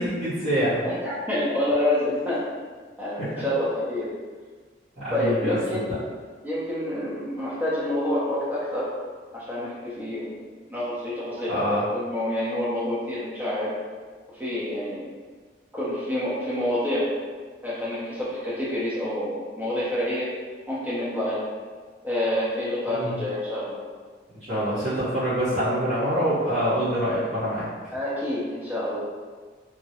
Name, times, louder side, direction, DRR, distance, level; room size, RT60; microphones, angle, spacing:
voice 1, 0.0-0.8 3.2-3.3 5.0-5.8 11.5-11.8 22.9-23.2 24.5-27.7, equal, 40° right, -18 dB, 1.3 m, -25 dB
voice 2, 0.8-2.5 3.0-4.1 5.1-6.0 6.4-8.9 9.3-13.7 14.4-15.1 15.7-17.1 17.6-20.3 20.7-21.5 22.0-23.8 27.9-29.0, left 1 dB, 10° right, -9 dB, 0.8 m, -27 dB
3.6 x 2.2 x 2.9 m, 1.5 s
head